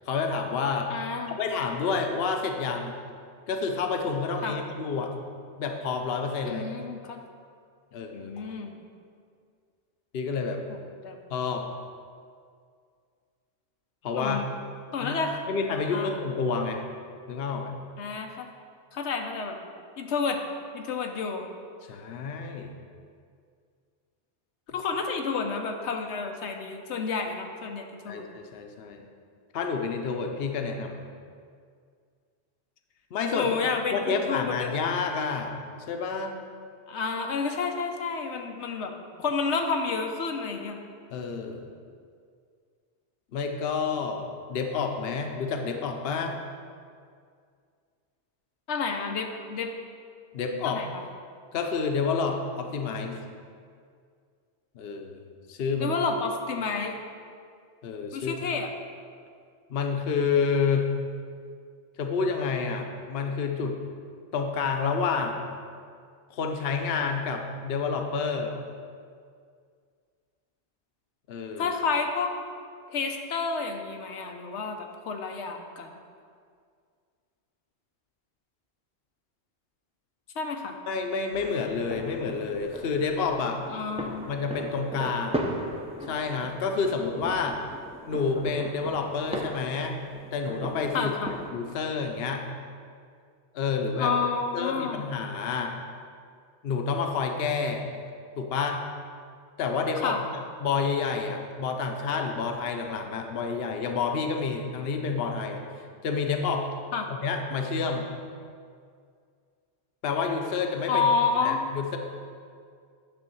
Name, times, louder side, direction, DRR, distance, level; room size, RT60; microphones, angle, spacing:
voice 1, 0.1-0.9 1.3-2.9 3.5-5.1 5.6-6.6 7.9-8.3 10.1-10.6 11.3-11.7 14.0-14.4 15.0-15.2 15.5-16.8 17.3-17.7 21.9-22.7 28.1-29.1 29.5-31.0 33.1-33.6 33.9-35.5 35.9-36.4 41.1-41.7 43.3-46.4 50.3-50.8 51.5-53.2 54.8-55.9 57.8-58.4 59.7-60.9 62.0-63.8 64.3-65.5 66.3-68.5 71.3-71.7 80.9-83.6 84.3-85.5 86.1-87.6 88.0-90.0 90.3-91.1 91.5-92.4 93.5-94.1 94.5-95.8 96.6-97.8 98.4-98.8 99.6-100.1 100.6-105.6 106.0-106.7 107.1-108.0 110.0-111.1 111.4-112.0, left 5 dB, 65° left, 4 dB, 0.9 m, -29 dB
voice 2, 0.9-1.4 4.4-4.6 6.4-7.2 8.1-8.7 11.0-11.2 14.1-14.5 14.9-15.4 15.9-16.1 18.0-18.5 18.9-19.6 20.0-20.4 20.7-21.5 24.7-28.3 33.3-34.7 36.9-38.9 39.2-40.8 48.7-49.7 50.7-51.0 55.8-57.0 58.1-58.7 71.6-72.3 72.9-75.9 80.4-80.8 83.7-84.3 90.9-91.3 94.0-95.1 99.9-100.2 106.9-107.1 110.9-111.6, left 5 dB, 90° left, 4 dB, 1.0 m, -30 dB
sound 1, 81.3-91.5, right 1 dB, 5° right, 0.5 m, -38 dB
10.0 x 3.5 x 6.9 m, 2.2 s
omnidirectional pair, 1.1 m